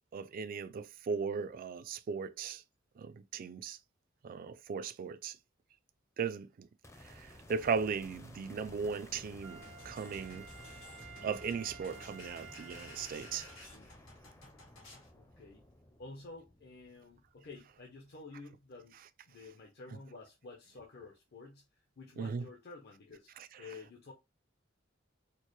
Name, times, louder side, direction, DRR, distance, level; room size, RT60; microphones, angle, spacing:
voice 1, 0.1-2.6 3.0-3.8 4.2-5.4 6.2-6.7 7.0-10.5 11.2-13.7 22.2-22.5 23.4-23.6, right 5 dB, 45° right, 0.3 m, -37 dB
sound 1, 6.8-18.2, left 1 dB, 15° left, 0.5 m, -56 dB
Wind instrument woodwind instrument, 9.4-13.7 14.2-14.3, right 6 dB, 80° right, 0.8 m, -53 dB
sound 2, 9.6-15.1, left 2 dB, 85° left, 2.0 m, -54 dB
voice 2, 15.1-15.6 16.0-19.0 19.3-24.1, left 3 dB, 55° left, 0.6 m, -51 dB
4.4 x 2.0 x 3.1 m
head